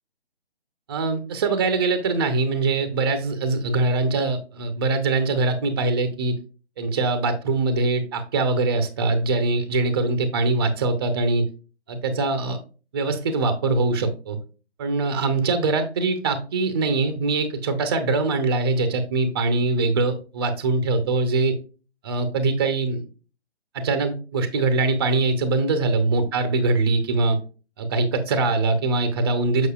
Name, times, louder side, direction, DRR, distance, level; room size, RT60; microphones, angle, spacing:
voice 1, 0.9-6.4 6.8-11.5 11.9-12.6 12.9-14.4 14.8-21.6 22.0-23.0 23.7-27.4 27.8-29.7, right 3 dB, 20° right, 9 dB, 0.7 m, -23 dB
6.8 x 6.2 x 2.3 m, 0.34 s
figure-of-eight pair, 150°, 33 cm